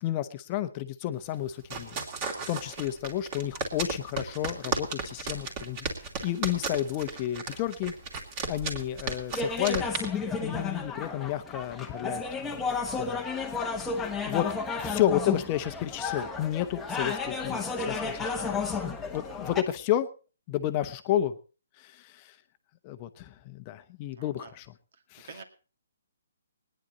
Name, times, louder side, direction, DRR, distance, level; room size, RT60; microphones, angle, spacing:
voice 1, 0.0-2.0 2.5-7.9 8.5-9.8 10.4-12.6 13.0-13.2 14.3-14.5 14.8-18.7 19.1-20.1 20.5-21.4 21.8-22.4 22.8-24.7 25.1-25.3, left 12 dB, 25° left, 10 dB, 1.0 m, -31 dB
sound 1, 1.2-10.1, right 4 dB, 25° right, 2.8 m, -35 dB
voice 2, 2.4-2.7 14.9-15.0 19.3-19.4 24.2-24.5 25.2-25.4, right 5 dB, 55° right, 6 dB, 2.3 m, -48 dB
sound 2, 9.3-19.6, left 4 dB, 10° left, 1.2 m, -32 dB
19.5 x 10.5 x 4.0 m, 0.35 s
hypercardioid pair, 155°, 0 cm